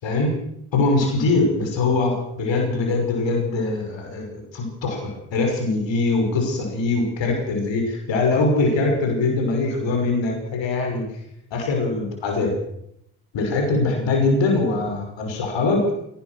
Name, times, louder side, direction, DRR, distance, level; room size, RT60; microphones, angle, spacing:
voice 1, 0.0-0.4 0.7-11.0 11.5-12.5 13.3-15.8, left 3 dB, 65° left, 2 dB, 6.2 m, -22 dB
22.0 x 19.0 x 6.5 m, 0.77 s
hypercardioid pair, 40°, 48 cm